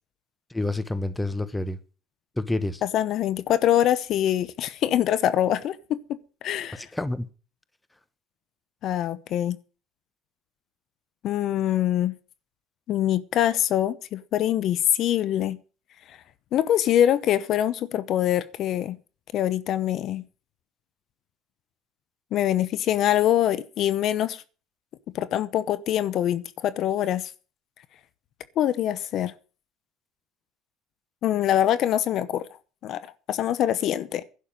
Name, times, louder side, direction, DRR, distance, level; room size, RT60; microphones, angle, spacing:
voice 1, 0.5-1.8 2.4-2.8 6.8-7.2, left 2 dB, 10° left, 1.1 m, -28 dB
voice 2, 2.8-6.9 8.8-9.6 11.2-12.1 12.9-15.6 16.5-19.0 19.3-20.2 22.3-24.4 25.1-27.3 28.6-29.3 31.2-32.5 32.8-34.2, left 11 dB, 55° left, 0.8 m, -24 dB
11.0 x 6.9 x 9.0 m
supercardioid pair, 105°, 0 cm